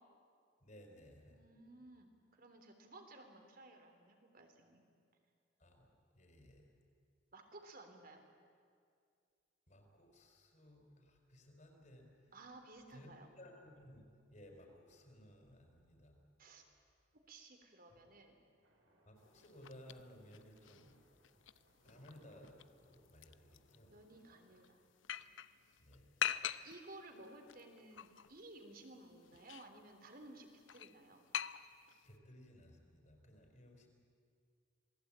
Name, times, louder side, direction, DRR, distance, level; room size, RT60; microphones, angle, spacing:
voice 1, 0.6-1.4 5.6-6.7 9.7-12.3 12.9-13.1 13.4-16.2 17.9-18.1 19.1-20.9 21.8-24.0 25.8-26.2 32.0-33.9, equal, 40° left, 3 dB, 4.9 m, -59 dB
voice 2, 1.3-4.8 7.3-8.2 12.3-13.3 16.4-16.6 17.1-18.4 23.9-24.8 26.6-31.2, right 2 dB, 50° right, 5 dB, 3.3 m, -56 dB
Thunder, 18.6-24.4, right 1 dB, 80° right, 5.5 m, -71 dB
sound 1, 19.2-32.2, left 9 dB, 80° left, 0.7 m, -46 dB
28.0 x 19.5 x 8.9 m, 2.2 s
head